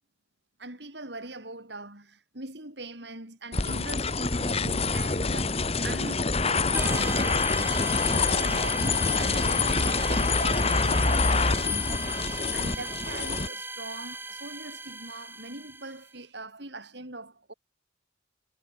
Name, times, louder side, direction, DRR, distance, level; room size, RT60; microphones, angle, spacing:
voice 1, 0.6-12.0 12.5-17.5, right 2 dB, 65° right, 6.8 m, -42 dB
sound 1, 3.5-13.5, left 4 dB, 35° left, 1.4 m, -26 dB
sound 2, 6.7-16.1, right 2 dB, 10° right, 3.6 m, -37 dB
head